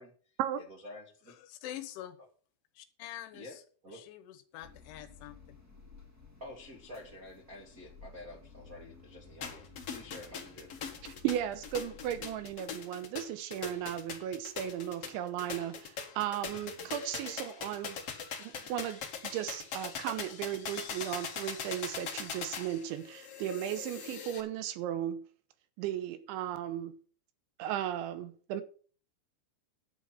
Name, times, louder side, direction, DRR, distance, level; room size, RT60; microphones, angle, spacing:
voice 1, 0.0-0.3 0.7-1.3 3.3-3.6 3.8-4.0 6.4-9.6 9.9-10.8, left 1 dB, 50° right, 1.0 m, -49 dB
voice 2, 1.4-2.2 2.8-3.6 3.9-5.6, left 13 dB, 75° left, 3.3 m, -45 dB
sound 1, 4.6-12.6, left 4 dB, 5° right, 1.7 m, -55 dB
sound 2, 9.4-24.4, left 6 dB, 60° left, 1.6 m, -41 dB
voice 3, 11.2-18.0 18.4-25.2 25.8-27.0 27.6-28.6, right 11 dB, 80° right, 3.1 m, -36 dB
11.0 x 8.3 x 5.8 m
omnidirectional pair, 5.6 m